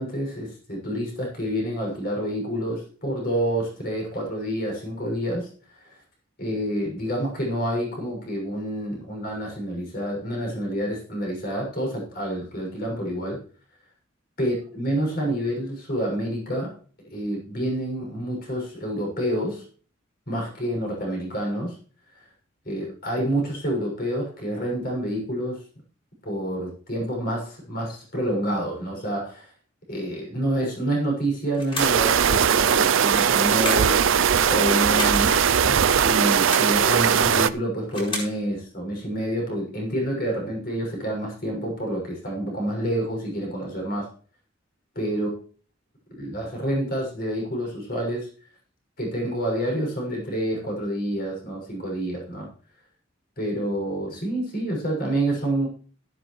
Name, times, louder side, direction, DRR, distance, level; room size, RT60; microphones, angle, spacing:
voice 1, 0.0-5.5 6.4-13.4 14.4-16.7 17.1-19.6 20.3-21.7 22.6-25.6 26.2-29.5 29.9-34.1 34.4-44.1 44.9-45.3 46.1-48.3 49.0-52.5 53.4-55.7, right 1 dB, 45° left, -1 dB, 6.4 m, -28 dB
sound 1, 31.5-32.1 33.4-34.0 34.7-35.2 36.2-36.8 37.6-38.4, left 1 dB, 25° left, 4.6 m, -33 dB
sound 2, 31.8-37.5, right 7 dB, 70° right, 0.5 m, -19 dB
13.5 x 12.0 x 3.2 m, 0.41 s
head